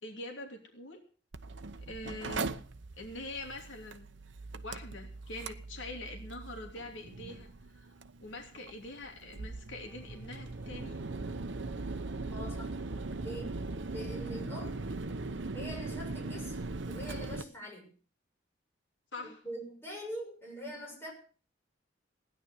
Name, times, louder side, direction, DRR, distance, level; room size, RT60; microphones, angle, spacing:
voice 1, 0.0-1.0 1.8-2.6 3.0-4.1 4.6-7.5 7.7-7.9 8.2-11.0 19.1-19.4, left 2 dB, 75° left, 3 dB, 3.0 m, -44 dB
Mechanical fan, 1.3-17.4, right 3 dB, 70° right, 0.9 m, -40 dB
sound 1, 9.7-15.6, right 1 dB, 10° right, 2.8 m, -60 dB
voice 2, 12.3-12.8 13.2-13.6 13.9-14.8 15.5-16.6 16.9-17.9 19.2-21.1, equal, 15° left, -1 dB, 6.8 m, -43 dB
16.5 x 10.5 x 6.5 m, 0.40 s
head